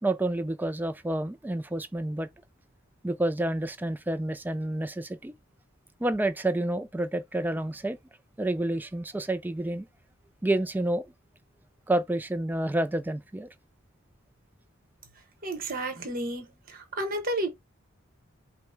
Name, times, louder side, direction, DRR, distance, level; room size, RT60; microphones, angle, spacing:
voice 1, 0.0-2.3 3.0-5.3 6.0-8.0 8.4-9.9 10.4-11.0 11.9-13.5, right 1 dB, 10° right, 0.4 m, -29 dB
voice 2, 15.4-17.5, right 1 dB, 45° right, 1.2 m, -32 dB
5.1 x 2.2 x 4.4 m
head